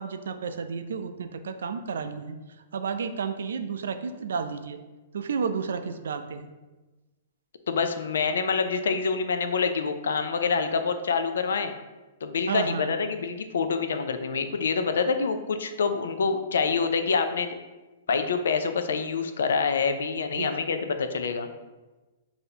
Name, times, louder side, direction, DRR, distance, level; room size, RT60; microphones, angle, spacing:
voice 1, 0.0-2.4 2.7-4.8 5.1-6.5 12.5-12.9 20.4-20.7, right 5 dB, 85° right, 9 dB, 0.3 m, -31 dB
voice 2, 7.7-11.7 12.2-17.6 18.1-21.5, left 5 dB, 85° left, 8 dB, 0.4 m, -26 dB
5.7 x 2.7 x 2.7 m, 1.2 s
hypercardioid pair, 155°, 0 cm